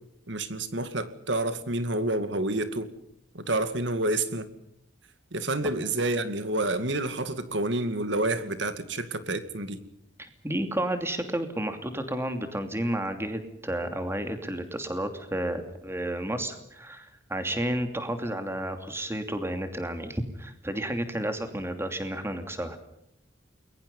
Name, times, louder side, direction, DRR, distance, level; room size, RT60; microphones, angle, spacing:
voice 1, 0.3-2.9 3.3-4.5 5.3-9.8, right 2 dB, 65° right, 2.3 m, -29 dB
voice 2, 10.2-22.8, right 1 dB, 15° right, 2.7 m, -31 dB
29.5 x 22.0 x 5.5 m
head